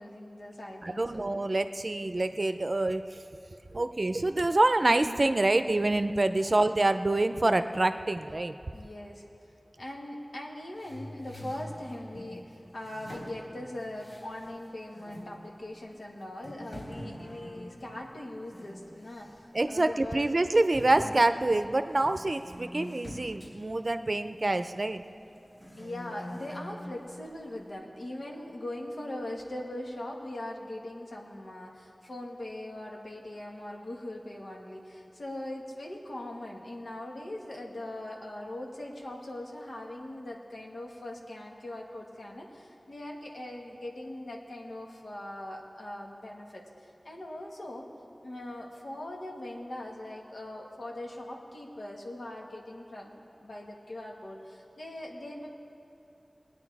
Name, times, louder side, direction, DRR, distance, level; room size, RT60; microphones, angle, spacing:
voice 1, 0.0-1.2 6.4-6.5 8.7-9.2 9.8-19.3 19.7-20.2 25.7-47.9 48.2-55.5, left 1 dB, 85° left, -1 dB, 1.7 m, -41 dB
voice 2, 0.8-3.2 3.7-8.5 19.5-25.0, right 2 dB, 55° right, 9 dB, 0.5 m, -26 dB
sound 1, 10.8-12.3 12.8-14.6 14.9-15.3 15.9-16.0 16.4-18.8 19.0-19.4 19.8-19.9 20.7-24.7 25.2-26.9, equal, 60° left, 3.5 m, -45 dB
20.5 x 9.4 x 4.8 m, 2.7 s
wide cardioid pair, 50°, 0 cm